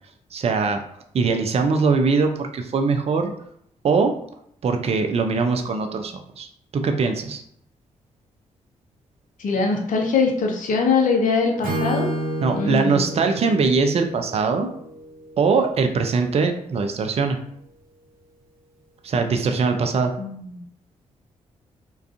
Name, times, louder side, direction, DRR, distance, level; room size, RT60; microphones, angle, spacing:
voice 1, 0.3-0.8 1.1-3.3 3.8-4.2 4.6-6.5 6.7-7.4 12.4-14.7 15.4-17.4 19.0-20.1, right 4 dB, 40° right, 5 dB, 0.4 m, -21 dB
voice 2, 9.4-12.1 12.5-13.0 20.2-20.6, left 4 dB, 55° left, 2 dB, 0.6 m, -22 dB
Acoustic guitar / Strum, 11.6-15.6, right 1 dB, 60° right, 0.8 m, -30 dB
2.3 x 2.3 x 2.5 m, 0.69 s
hypercardioid pair, 40°, 16 cm